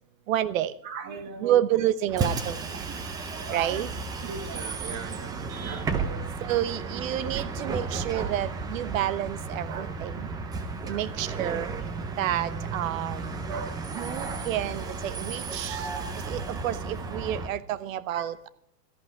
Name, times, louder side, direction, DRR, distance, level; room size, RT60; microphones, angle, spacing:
voice 1, 0.3-0.7 1.4-2.8 3.5-3.9 6.4-10.3 10.9-11.7 12.2-13.3 13.9-15.9 16.3-18.5, right 12 dB, 55° right, 16 dB, 1.0 m, -29 dB
voice 2, 0.8-1.6 2.9-3.8 4.2-6.5 8.1-8.3 9.7-9.9 10.8-11.1 13.5-13.9 14.6-14.7 18.1-18.3, right 6 dB, 35° right, 8 dB, 1.6 m, -39 dB
Bus, 2.1-17.5, right 4 dB, 10° right, 0.5 m, -33 dB
13.5 x 11.5 x 4.8 m, 0.72 s
hypercardioid pair, 140°, 48 cm